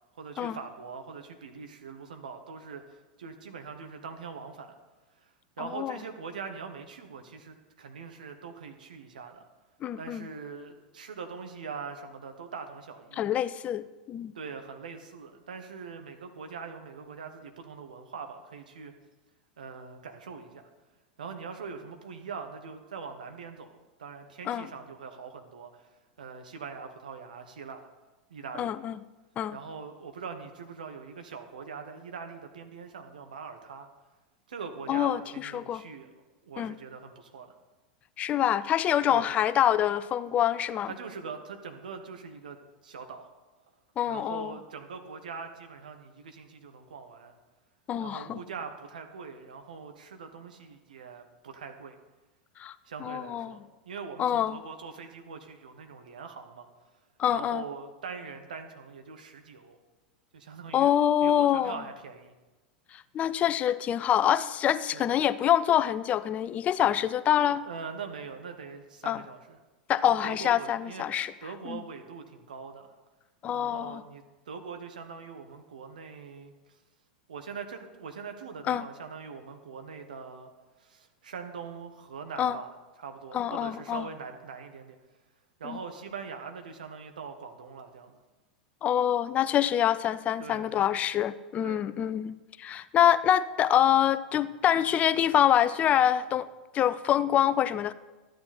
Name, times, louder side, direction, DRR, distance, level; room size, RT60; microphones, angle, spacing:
voice 1, 0.1-4.7 5.2-9.5 10.0-13.3 14.3-18.9 19.6-20.7 21.2-25.9 26.2-27.9 28.3-28.8 29.5-33.9 34.5-36.1 36.4-37.6 39.1-39.3 40.8-42.6 42.8-43.3 44.1-47.3 48.0-52.0 52.9-56.7 57.3-59.8 60.3-60.9 61.2-62.3 64.9-65.1 67.6-69.6 70.0-71.1 71.4-72.9 73.5-76.8 77.3-80.5 80.8-82.7 83.0-85.0 85.6-88.2 90.4-90.8 91.6-91.8, right 5 dB, 70° right, 6 dB, 1.2 m, -42 dB
voice 2, 9.8-10.2 13.2-14.3 24.5-24.7 28.6-29.0 29.4-29.6 34.9-35.8 36.6-36.7 38.2-40.9 44.0-44.5 47.9-48.4 52.6-52.7 53.0-53.5 54.2-54.6 57.2-57.6 60.7-61.8 62.9-67.6 69.0-69.2 69.9-71.3 71.7-71.8 73.4-74.0 78.7-78.8 82.4-82.6 83.3-84.1 85.6-85.8 88.8-96.5 96.7-97.9, left 10 dB, 30° left, 16 dB, 0.4 m, -26 dB
13.0 x 9.4 x 4.2 m, 1.2 s
figure-of-eight pair, 90°, 5 cm